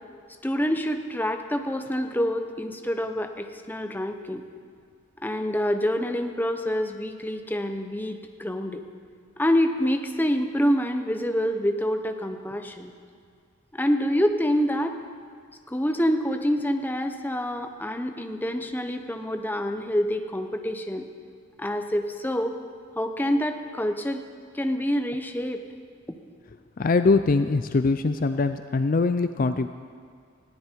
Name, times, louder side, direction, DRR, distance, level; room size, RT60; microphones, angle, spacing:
voice 1, 0.4-4.4 5.2-8.8 9.4-12.9 13.7-14.9 15.7-21.1 21.6-22.6 23.0-24.3 24.5-25.6, equal, 10° left, 6 dB, 0.9 m, -26 dB
voice 2, 26.8-29.7, left 3 dB, 45° left, 10 dB, 0.4 m, -22 dB
19.5 x 15.5 x 4.6 m, 2.1 s
head